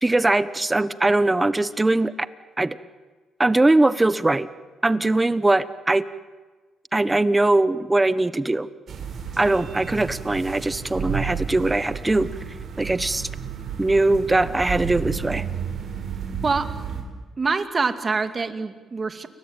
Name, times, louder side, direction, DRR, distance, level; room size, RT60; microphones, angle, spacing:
voice 1, 0.0-2.1 2.6-2.8 3.4-4.5 4.8-6.0 6.9-8.7 9.4-12.3 12.8-13.3 13.8-15.4, right 2 dB, 15° right, 14 dB, 1.1 m, -21 dB
sound 1, 8.9-17.0, right 7 dB, 55° right, 6.0 m, -32 dB
voice 2, 17.4-19.3, right 4 dB, 35° right, 8 dB, 2.3 m, -25 dB
30.0 x 21.5 x 9.0 m, 1.3 s
cardioid pair, 90°, 0 cm